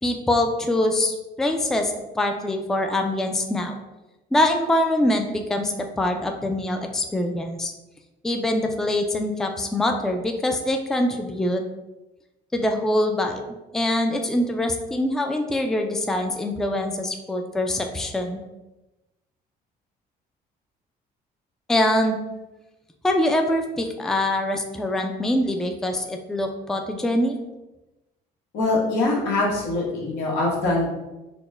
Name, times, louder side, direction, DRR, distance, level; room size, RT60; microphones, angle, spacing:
voice 1, 0.0-3.7 4.3-7.7 8.2-11.6 12.5-13.4 13.7-18.4 21.7-22.2 23.0-27.4, left 1 dB, 5° left, 4 dB, 0.3 m, -24 dB
voice 2, 28.5-30.9, left 2 dB, 90° left, -3 dB, 1.2 m, -23 dB
4.2 x 2.1 x 3.3 m, 1.0 s
cardioid pair, 110°, 17 cm